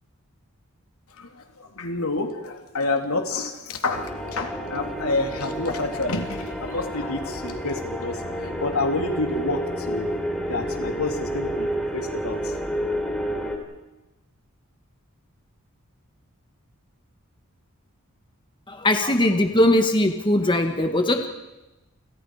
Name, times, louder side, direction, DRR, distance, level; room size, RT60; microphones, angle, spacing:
voice 1, 1.2-10.2 10.5-12.5, left 2 dB, 80° left, 3 dB, 3.3 m, -28 dB
sound 1, 3.9-13.6, equal, 5° left, 3.7 m, -30 dB
voice 2, 18.7-21.3, left 1 dB, 20° left, 5 dB, 1.6 m, -20 dB
29.0 x 28.0 x 5.0 m, 1.0 s
head